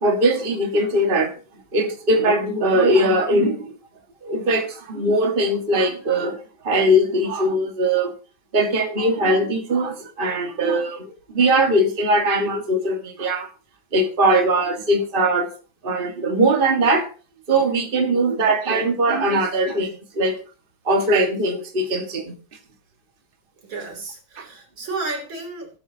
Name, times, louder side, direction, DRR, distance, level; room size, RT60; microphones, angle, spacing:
voice 1, 0.0-1.3 1.7-3.7 4.2-6.4 6.6-8.1 8.5-13.5 13.9-15.5 15.8-17.1 17.5-20.3 20.9-22.3, right 1 dB, 30° right, 2 dB, 1.9 m, -20 dB
voice 2, 23.6-25.7, right 3 dB, 80° right, 2 dB, 3.9 m, -32 dB
17.5 x 9.0 x 2.8 m, 0.37 s
omnidirectional pair, 2.1 m